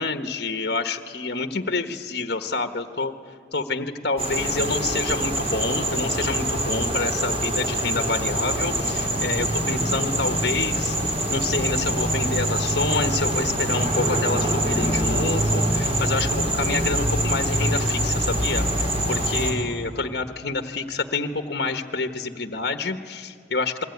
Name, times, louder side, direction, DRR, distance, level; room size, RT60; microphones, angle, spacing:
voice 1, 0.0-3.1 3.5-11.0 11.3-23.8, left 3 dB, 55° left, 7 dB, 1.2 m, -28 dB
sound 1, 4.2-19.5, right 1 dB, 30° right, 5.1 m, -24 dB
27.0 x 22.5 x 9.4 m, 2.2 s
head